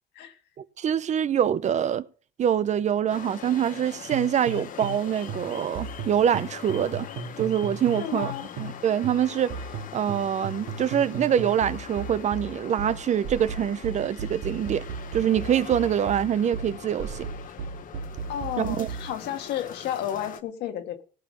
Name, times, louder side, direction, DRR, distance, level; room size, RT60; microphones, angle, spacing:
voice 1, 0.6-2.0 2.4-7.1 7.4-8.3 8.6-9.6 9.9-14.9 15.1-17.3 18.6-18.9, right 9 dB, 45° right, 0.6 m, -25 dB
sound 1, 3.1-20.4, left 8 dB, 55° left, 1.0 m, -42 dB
sound 2, 4.1-8.8 9.0-19.1, right 5 dB, 75° right, 2.3 m, -36 dB
voice 2, 8.0-8.5 18.3-21.0, left 10 dB, 85° left, 1.6 m, -32 dB
17.0 x 6.9 x 5.3 m
cardioid pair, 110°, 17 cm